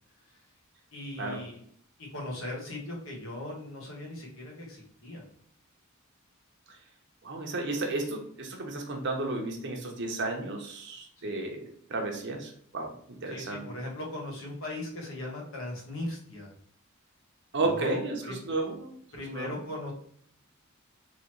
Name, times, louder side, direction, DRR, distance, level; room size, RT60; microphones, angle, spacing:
voice 1, 0.9-1.6 2.0-5.3 11.2-11.4 13.3-16.5 17.5-18.4 19.1-19.9, left 1 dB, 70° left, -1 dB, 1.3 m, -38 dB
voice 2, 7.2-11.6 11.9-12.9 13.2-13.6 17.5-18.9 19.3-19.5, right 2 dB, 55° right, 3 dB, 0.8 m, -32 dB
3.9 x 2.9 x 2.9 m, 0.63 s
head